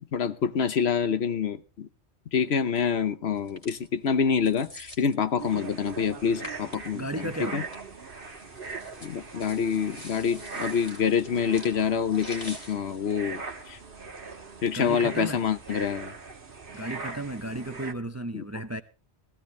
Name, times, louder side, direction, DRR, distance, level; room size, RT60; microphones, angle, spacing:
voice 1, 0.1-1.9 2.3-7.6 9.0-13.4 13.7-13.8 14.6-16.1 18.3-18.4, left 6 dB, 70° left, 1.1 m, -26 dB
sound 1, 3.3-14.1, left 1 dB, 30° left, 2.6 m, -49 dB
sound 2, 5.4-17.9, right 4 dB, 50° right, 1.5 m, -41 dB
voice 2, 6.9-7.7 14.7-15.4 16.7-18.8, right 1 dB, 20° right, 0.5 m, -34 dB
16.0 x 16.0 x 3.1 m
omnidirectional pair, 1.2 m